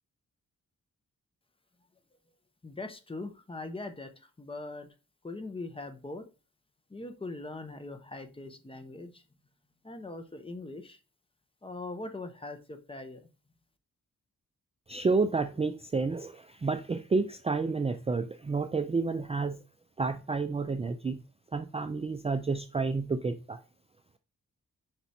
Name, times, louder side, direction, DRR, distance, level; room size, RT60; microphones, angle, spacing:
voice 1, 2.6-4.1 4.4-4.9 5.2-6.2 6.9-9.1 9.8-11.0 11.6-13.2, left 2 dB, 15° left, 0.7 m, -41 dB
voice 2, 14.9-19.6 20.0-21.2 21.5-23.6, right 4 dB, 20° right, 0.3 m, -30 dB
5.0 x 4.6 x 4.2 m
wide cardioid pair, 140°, 31 cm